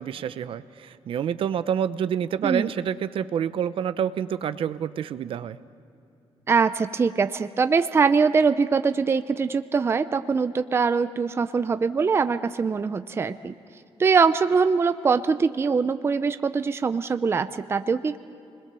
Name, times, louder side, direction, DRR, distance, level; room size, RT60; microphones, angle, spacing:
voice 1, 0.0-5.6, right 8 dB, 60° right, 13 dB, 0.7 m, -28 dB
voice 2, 6.5-13.5 14.0-18.2, right 5 dB, 25° right, 11 dB, 0.5 m, -23 dB
29.5 x 21.0 x 6.9 m, 2.8 s
cardioid pair, 150°, 10 cm